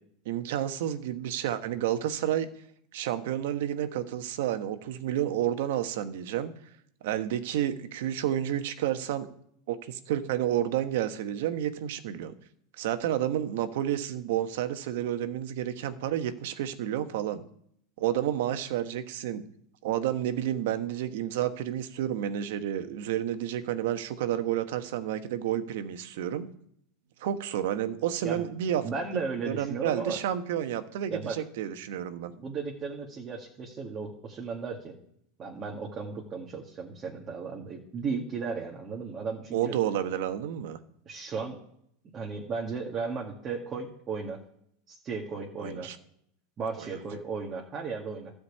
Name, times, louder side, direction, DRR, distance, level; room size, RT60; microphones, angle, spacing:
voice 1, 0.2-2.5 2.9-6.5 7.0-9.3 9.7-12.3 12.8-17.4 18.0-19.4 19.8-26.5 27.2-28.8 29.1-32.3 39.5-40.8 45.6-46.0 46.8-46.9, right 11 dB, 75° right, 10 dB, 1.2 m, -30 dB
voice 2, 28.8-30.2 31.1-31.4 32.2-34.9 35.4-39.8 41.1-41.6 42.1-44.4 44.9-45.9 46.6-48.3, right 5 dB, 30° right, -1 dB, 1.9 m, -35 dB
12.5 x 5.2 x 8.4 m, 0.69 s
supercardioid pair, 130°, 0 cm